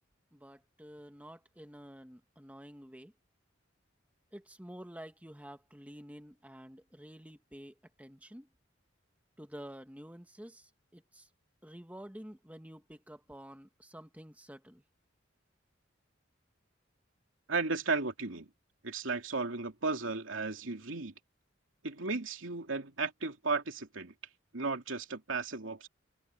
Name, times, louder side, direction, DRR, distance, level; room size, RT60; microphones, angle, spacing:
voice 1, 0.3-3.1 4.3-8.5 9.4-11.3 11.6-14.8, equal, 10° right, 1.8 m, -50 dB
voice 2, 17.5-18.5 18.8-21.1 21.8-24.1 24.5-25.9, right 4 dB, 85° right, 2.7 m, -34 dB
head